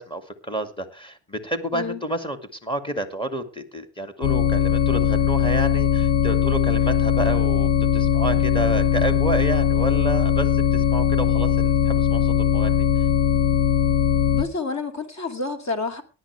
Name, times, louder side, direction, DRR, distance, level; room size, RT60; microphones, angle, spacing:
voice 1, 0.0-13.1, right 2 dB, 10° left, 2.3 m, -30 dB
sound 1, 4.2-14.4, left 7 dB, 85° left, 1.2 m, -20 dB
voice 2, 14.3-16.0, left 3 dB, 35° left, 2.6 m, -29 dB
18.0 x 11.0 x 3.4 m
cardioid pair, 110°, 45 cm